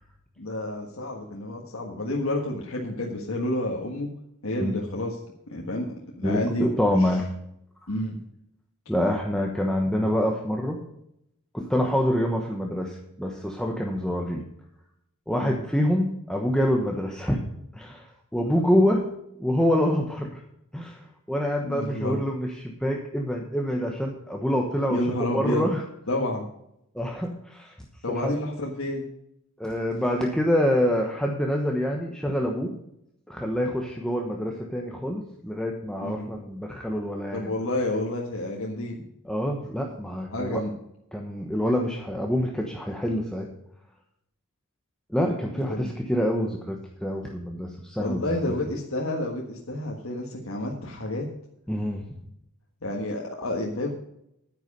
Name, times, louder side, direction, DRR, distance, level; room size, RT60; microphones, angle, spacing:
voice 1, 0.4-4.1 4.4-5.2 5.5-5.9 6.2-7.1 7.9-8.2 15.4-15.6 21.6-22.2 24.9-25.7 26.1-26.4 28.0-29.0 36.0-36.3 37.3-39.1 40.3-40.7 45.5-45.9 48.0-51.3 52.8-53.9, left 1 dB, 65° left, -1 dB, 1.6 m, -29 dB
voice 2, 6.2-7.3 7.8-7.9 8.9-10.8 11.5-14.4 15.3-17.4 17.7-19.0 19.4-20.4 20.7-25.8 26.9-27.7 28.1-28.4 29.6-32.8 33.3-37.5 39.2-40.6 41.1-43.5 45.1-48.5 51.7-52.0, equal, 5° left, 0 dB, 1.1 m, -26 dB
9.7 x 9.6 x 5.4 m, 0.78 s
head